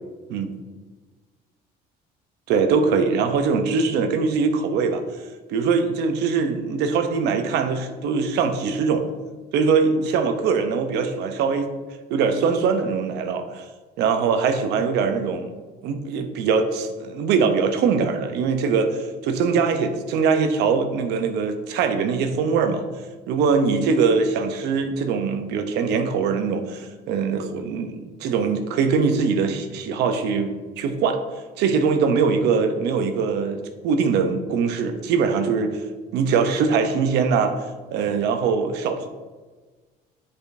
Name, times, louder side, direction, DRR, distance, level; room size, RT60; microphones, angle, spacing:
voice 1, 2.5-5.0 5.5-9.0 9.5-11.7 12.1-13.6 14.0-15.5 15.8-22.8 23.3-31.2 31.6-35.8 36.1-37.6 37.9-39.1, right 5 dB, 85° right, 7 dB, 0.7 m, -22 dB
8.8 x 5.0 x 2.7 m, 1.3 s
cardioid pair, 110°, 17 cm